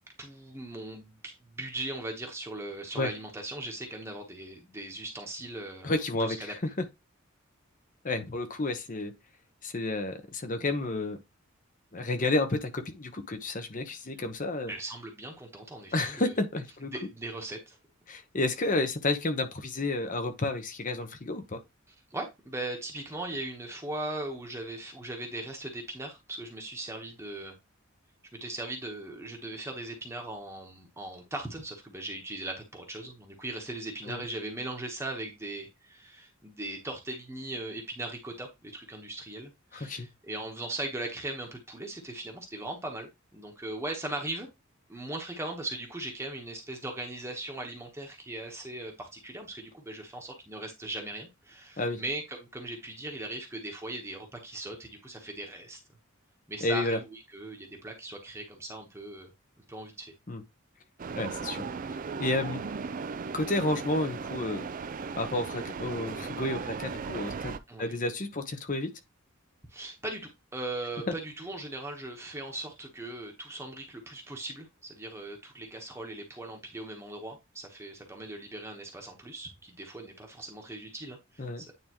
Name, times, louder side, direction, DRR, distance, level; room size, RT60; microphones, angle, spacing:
voice 1, 0.2-5.9 6.2-6.5 14.7-16.3 16.9-17.8 21.9-27.5 28.3-44.5 44.9-55.8 56.5-59.3 59.7-60.1 67.7-68.0 69.7-81.7, right 2 dB, 15° right, 1.1 m, -39 dB
voice 2, 5.8-6.8 8.0-9.1 9.6-11.2 11.9-14.7 15.9-16.9 18.1-21.6 34.1-34.2 39.7-40.1 51.8-52.0 56.6-57.0 60.3-60.4 61.2-61.7 62.2-62.6 63.3-64.7 65.1-68.9 81.4-81.6, left 2 dB, 40° left, 1.0 m, -31 dB
sound 1, 61.0-67.6, right 5 dB, 40° right, 0.4 m, -37 dB
9.3 x 3.6 x 3.0 m
head